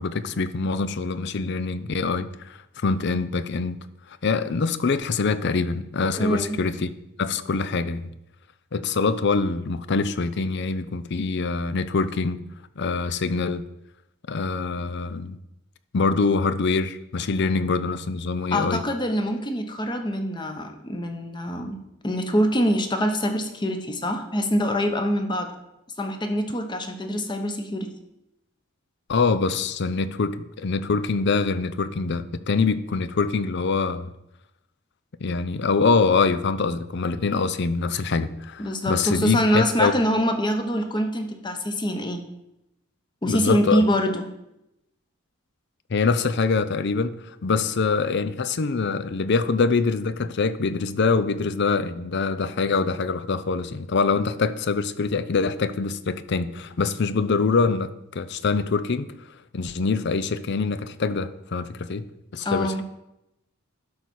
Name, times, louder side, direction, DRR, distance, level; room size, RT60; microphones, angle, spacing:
voice 1, 0.0-3.8 4.2-6.9 7.2-8.1 8.7-12.4 12.8-13.6 14.3-15.4 15.9-18.8 29.1-34.1 35.2-39.9 43.2-43.8 45.9-59.1 59.5-62.0 62.3-62.8, left 4 dB, 55° left, 14 dB, 0.5 m, -24 dB
voice 2, 6.1-6.6 18.5-21.8 22.0-25.5 26.0-27.9 38.6-42.2 43.2-44.2 62.4-62.8, equal, 20° left, 6 dB, 1.0 m, -24 dB
11.5 x 4.1 x 6.3 m, 0.88 s
head